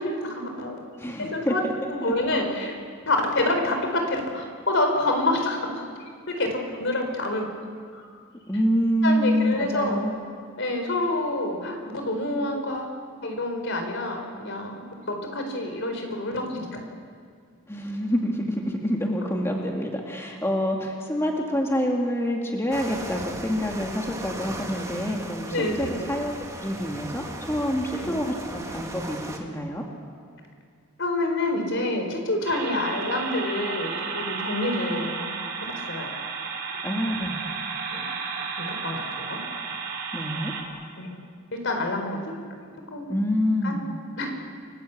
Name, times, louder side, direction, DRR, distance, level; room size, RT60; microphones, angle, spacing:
voice 1, 0.0-0.8 1.2-1.6 1.9-2.8 3.0-5.8 6.3-7.4 7.9-8.1 9.0-10.0 10.6-12.9 13.2-16.8 25.5-26.1 28.0-28.1 31.0-35.3 35.7-36.1 37.9-38.1 38.6-39.4 41.0-41.1 41.5-42.2 42.9-43.1 43.6-43.8 44.2-44.3, left 2 dB, 60° left, 4 dB, 4.6 m, -27 dB
voice 2, 1.0-1.7 2.0-2.1 8.5-10.1 17.7-29.8 36.8-37.4 40.1-40.5 43.1-43.8, equal, 10° left, 0 dB, 2.2 m, -27 dB
sound 1, 22.7-29.4, right 1 dB, 15° right, 2.3 m, -37 dB
sound 2, 32.4-40.6, right 5 dB, 55° right, 4.2 m, -33 dB
29.5 x 19.0 x 8.6 m, 2.1 s
head